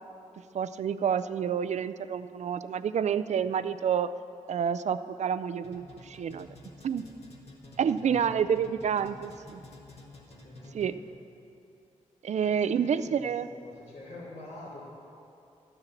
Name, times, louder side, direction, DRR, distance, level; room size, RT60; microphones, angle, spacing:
voice 1, 0.5-4.1 4.5-6.5 6.8-7.0 7.8-9.6 10.7-11.0 12.2-13.5, right 7 dB, 60° right, 13 dB, 0.4 m, -28 dB
sound 1, 5.6-11.2, left 2 dB, 50° left, 1.9 m, -51 dB
voice 2, 8.0-9.3 10.4-11.1 12.5-14.9, left 1 dB, 80° left, -10 dB, 2.5 m, -47 dB
12.0 x 6.8 x 7.1 m, 2.7 s
cardioid pair, 60°, 13 cm